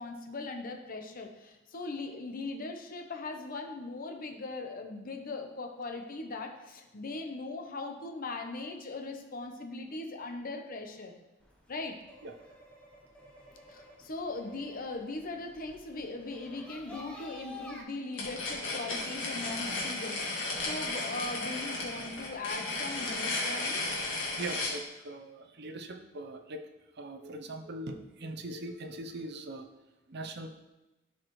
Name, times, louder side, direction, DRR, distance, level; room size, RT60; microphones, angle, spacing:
voice 1, 0.0-11.1 11.7-12.0 13.7-24.0, left 3 dB, 45° left, 4 dB, 0.8 m, -39 dB
sound 1, 11.4-17.8, left 2 dB, 5° left, 1.0 m, -51 dB
sound 2, 18.1-24.8, left 2 dB, 65° left, 1.9 m, -34 dB
voice 2, 24.4-26.6 27.0-29.7 30.1-30.5, right 2 dB, 55° right, 5 dB, 0.7 m, -41 dB
11.5 x 4.8 x 3.1 m, 1.0 s
head